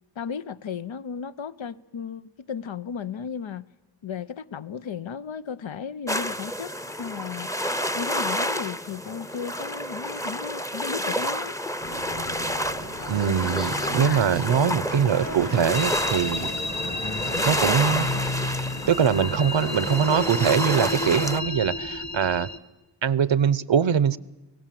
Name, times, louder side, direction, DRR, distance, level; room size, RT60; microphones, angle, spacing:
voice 1, 0.2-3.7 4.0-7.6 7.9-11.5, left 7 dB, 85° left, 13 dB, 0.7 m, -35 dB
sound 1, 6.1-21.4, equal, 5° left, 0.7 m, -30 dB
sound 2, 11.8-19.9, left 1 dB, 60° left, 8.0 m, -35 dB
voice 2, 13.1-16.5 17.4-18.1 18.9-22.5 23.0-24.2, right 7 dB, 80° right, 19 dB, 0.8 m, -22 dB
sound 3, 15.7-22.6, left 1 dB, 40° left, 2.1 m, -32 dB
26.0 x 17.5 x 7.5 m, 1.0 s
wide cardioid pair, 65°, 45 cm